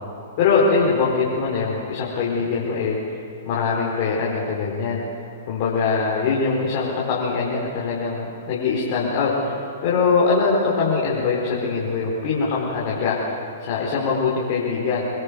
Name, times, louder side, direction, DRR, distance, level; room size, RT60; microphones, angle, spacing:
voice 1, 0.4-3.0 3.4-5.0 5.5-15.0, left 4 dB, 50° left, -5 dB, 4.8 m, -22 dB
26.5 x 21.5 x 5.5 m, 2.8 s
hypercardioid pair, 115°, 0 cm